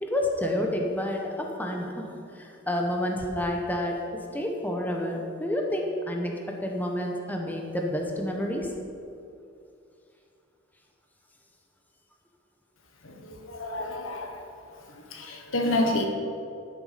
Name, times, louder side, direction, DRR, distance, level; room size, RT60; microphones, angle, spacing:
voice 1, 0.0-8.7, left 1 dB, 10° left, 0 dB, 1.1 m, -29 dB
voice 2, 13.0-14.4 15.1-16.1, left 1 dB, 80° left, 2 dB, 1.4 m, -29 dB
12.5 x 7.1 x 5.1 m, 2.5 s
head